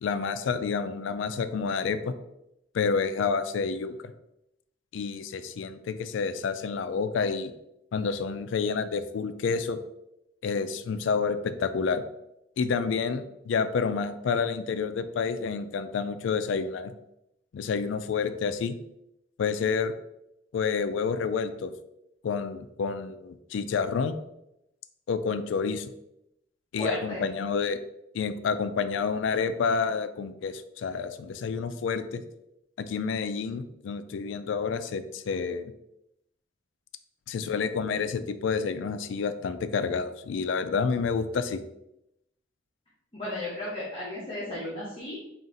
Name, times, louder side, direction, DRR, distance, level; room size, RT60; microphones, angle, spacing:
voice 1, 0.0-2.1 2.7-3.9 4.9-7.5 7.9-9.8 10.4-12.0 12.6-16.9 17.5-18.8 19.4-19.9 20.5-21.7 22.2-24.2 25.1-25.9 26.7-27.8 28.1-32.2 32.8-35.7 37.3-41.6, left 5 dB, 90° left, 11 dB, 0.3 m, -29 dB
voice 2, 26.8-27.3 37.4-37.5 43.1-45.3, left 1 dB, 30° left, -6 dB, 0.9 m, -35 dB
4.0 x 2.5 x 3.7 m, 0.84 s
head